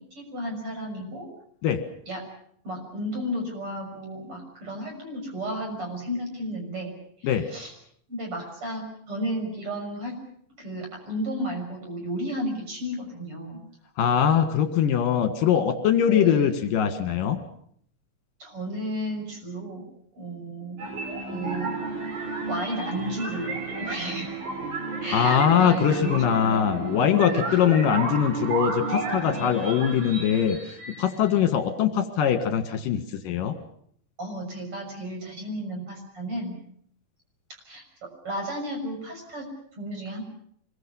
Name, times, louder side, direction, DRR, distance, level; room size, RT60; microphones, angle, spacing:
voice 1, 0.1-1.3 2.1-2.2 2.6-6.9 7.2-7.7 8.1-10.2 10.6-13.6 16.0-16.5 18.4-19.9 20.1-20.8 21.3-21.7 22.5-24.4 25.0-26.2 26.4-26.8 27.2-27.6 34.2-36.6 37.7-39.5 39.8-40.2, equal, 40° right, 2 dB, 7.1 m, -33 dB
voice 2, 14.0-17.4 25.1-30.6 31.0-33.5, left 9 dB, 75° left, 7 dB, 3.4 m, -22 dB
sound 1, 20.8-31.4, right 3 dB, 85° right, 6.4 m, -32 dB
26.0 x 21.5 x 7.1 m, 0.65 s
omnidirectional pair, 4.0 m